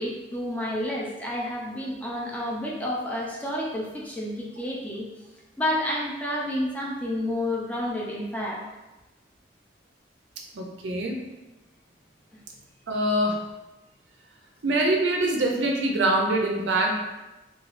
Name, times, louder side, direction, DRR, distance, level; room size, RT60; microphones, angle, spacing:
voice 1, 0.0-5.1 5.6-8.6 12.3-12.4, left 1 dB, 10° left, -4 dB, 0.4 m, -30 dB
voice 2, 10.5-11.2 12.9-13.4 14.6-17.0, right 1 dB, 85° right, 1 dB, 0.5 m, -24 dB
3.1 x 2.3 x 2.4 m, 1.0 s
head